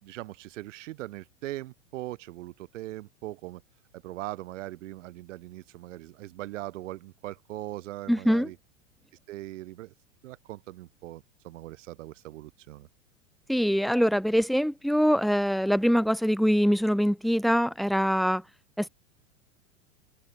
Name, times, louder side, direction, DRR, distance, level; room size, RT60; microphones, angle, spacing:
voice 1, 0.0-3.6 3.9-8.6 9.3-9.9 10.2-12.9, right 16 dB, 65° right, 3.9 m, -40 dB
voice 2, 8.1-8.5 13.5-18.4 18.8-18.9, equal, ahead, 1.3 m, -23 dB
hypercardioid pair, 105°, 40 cm